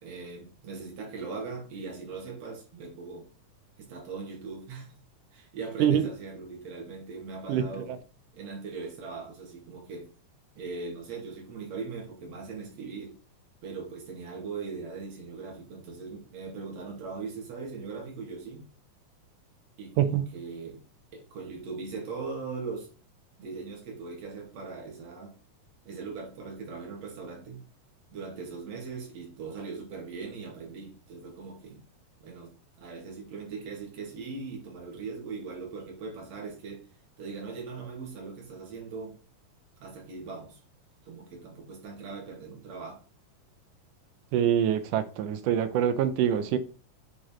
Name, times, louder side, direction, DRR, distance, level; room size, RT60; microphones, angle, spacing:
voice 1, 0.0-3.3 3.8-5.0 5.3-7.9 8.3-10.1 10.6-13.1 13.6-18.7 19.8-20.8 21.1-22.9 23.4-25.3 25.8-27.6 28.1-31.8 32.2-32.5 32.8-36.8 37.2-39.2 39.8-40.6 41.0-43.0, right 4 dB, 50° right, 3.2 m, -40 dB
voice 2, 7.5-8.0 20.0-20.2 44.3-46.6, right 9 dB, 75° right, 2.1 m, -25 dB
7.0 x 4.6 x 4.4 m
omnidirectional pair, 4.0 m